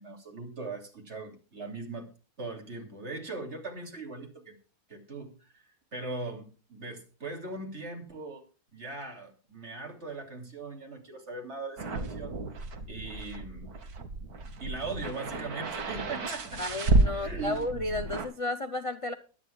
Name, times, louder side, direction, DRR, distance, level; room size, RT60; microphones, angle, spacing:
voice 1, 0.0-2.1 2.4-4.6 4.9-8.4 8.7-12.3 12.8-13.7 14.6-16.7 17.1-17.8, right 3 dB, 45° right, 3 dB, 3.2 m, -40 dB
sound 1, 11.8-18.3, right 2 dB, 70° right, 2.0 m, -31 dB
voice 2, 16.6-19.1, left 2 dB, 35° left, 9 dB, 0.5 m, -33 dB
22.0 x 9.6 x 2.4 m, 0.36 s
omnidirectional pair, 1.7 m